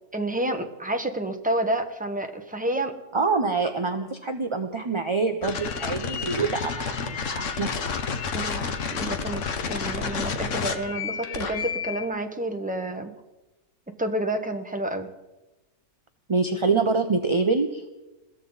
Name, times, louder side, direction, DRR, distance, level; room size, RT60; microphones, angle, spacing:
voice 1, 0.1-2.9 8.3-13.1 14.0-15.1, right 1 dB, 5° right, 4 dB, 1.1 m, -29 dB
voice 2, 3.1-7.8 16.3-17.9, right 4 dB, 30° right, 5 dB, 0.6 m, -25 dB
sound 1, 5.4-12.1, left 5 dB, 60° left, 1.3 m, -30 dB
21.5 x 15.5 x 4.0 m, 1.1 s
omnidirectional pair, 1.6 m